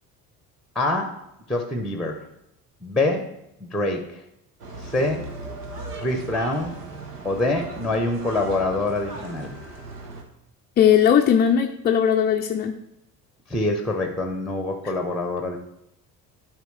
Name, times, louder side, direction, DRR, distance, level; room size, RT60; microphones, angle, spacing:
voice 1, 0.7-1.2 1.5-2.2 2.8-3.3 3.7-4.2 4.8-5.2 6.0-6.7 7.2-9.5 13.5-15.6, left 2 dB, ahead, 5 dB, 0.9 m, -25 dB
sound 1, 4.6-10.2, right 2 dB, 80° right, 1.2 m, -37 dB
voice 2, 10.8-12.7 14.8-14.9, left 8 dB, 20° left, 4 dB, 0.4 m, -18 dB
12.5 x 4.8 x 3.2 m, 0.80 s
figure-of-eight pair, 55°, 46 cm